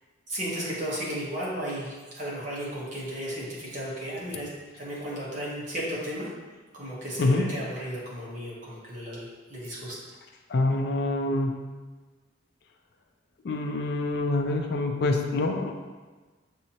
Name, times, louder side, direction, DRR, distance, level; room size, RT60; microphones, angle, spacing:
voice 1, 0.3-4.5 4.8-6.3 6.7-10.0, equal, 40° right, -6 dB, 1.1 m, -34 dB
voice 2, 10.5-11.5 13.4-15.7, left 2 dB, 55° left, 3 dB, 0.4 m, -25 dB
6.1 x 2.7 x 2.8 m, 1.3 s
head